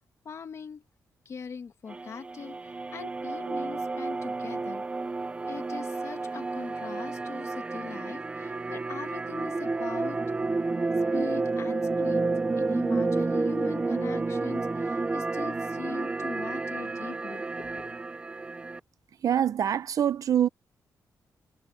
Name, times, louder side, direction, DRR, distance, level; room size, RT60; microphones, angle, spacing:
voice 1, 0.2-0.8 1.3-4.8 5.5-10.2 11.1-17.9, left 6 dB, 45° left, 2.1 m, -41 dB
sound 1, 1.9-18.8, right 3 dB, 15° right, 0.4 m, -30 dB
voice 2, 19.2-20.5, right 9 dB, 60° right, 0.6 m, -24 dB
wide cardioid pair, 150°, 7 cm